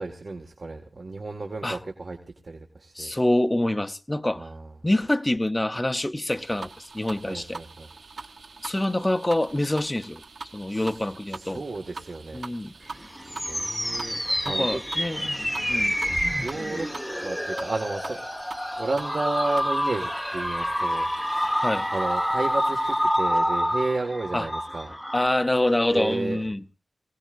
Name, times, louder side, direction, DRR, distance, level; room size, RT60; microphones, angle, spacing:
voice 1, 0.0-2.2 2.4-3.1 4.4-4.7 7.3-7.9 10.7-10.9 11.3-12.5 12.9-13.2 13.5-14.2 14.4-14.8 16.4-16.9 17.2-18.2 18.8-21.6 21.9-24.9 25.9-26.4, right 3 dB, 55° right, 2.0 m, -32 dB
voice 2, 2.9-4.5 4.8-7.6 8.6-10.2 10.5-11.6 12.3-12.7 14.5-15.4 15.7-16.0 21.6-21.9 24.3-24.5 25.1-26.6, left 1 dB, 15° left, 0.9 m, -26 dB
sound 1, 6.3-23.1, right 3 dB, 75° right, 1.1 m, -44 dB
sound 2, 12.9-25.3, equal, ahead, 1.5 m, -28 dB
22.0 x 17.5 x 2.7 m
wide cardioid pair, 105°, 0 cm